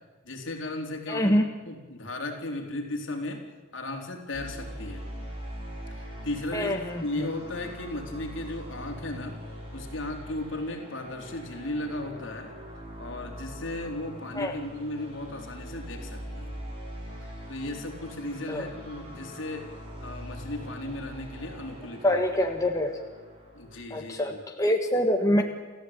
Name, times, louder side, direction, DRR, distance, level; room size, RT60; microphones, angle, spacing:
voice 1, 0.2-1.4 1.7-3.5 3.7-5.0 5.9-9.4 9.7-12.5 13.0-16.6 17.5-19.7 20.0-22.2 23.5-24.4, left 1 dB, 65° left, 2 dB, 4.1 m, -36 dB
voice 2, 1.1-1.5 6.5-7.3 14.3-14.5 18.5-18.7 22.0-23.0 23.9-25.4, left 1 dB, 15° left, 3 dB, 1.5 m, -25 dB
sound 1, 4.3-23.8, equal, 30° right, 6.8 m, -42 dB
29.5 x 15.0 x 8.9 m, 1.4 s
head